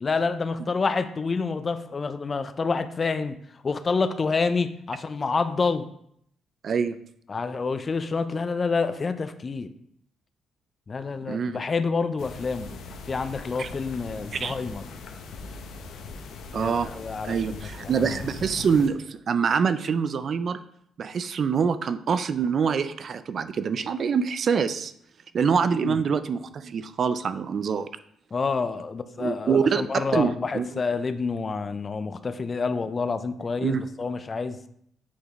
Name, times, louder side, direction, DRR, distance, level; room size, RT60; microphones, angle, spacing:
voice 1, 0.0-3.4 3.6-5.9 7.3-9.7 10.9-12.7 13.1-14.8 16.5-17.6 17.9-18.1 25.7-26.0 28.3-34.6, left 4 dB, 35° left, 12 dB, 0.4 m, -28 dB
voice 2, 6.6-7.0 11.3-11.6 13.6-13.7 14.3-14.6 16.5-16.9 17.2-20.6 21.0-24.9 25.3-27.9 29.2-30.8 33.6-33.8, right 6 dB, 50° right, 12 dB, 0.3 m, -25 dB
sound 1, 12.2-18.9, left 3 dB, 75° left, 0.7 m, -40 dB
8.5 x 3.9 x 3.0 m, 0.69 s
cardioid pair, 90°, 0 cm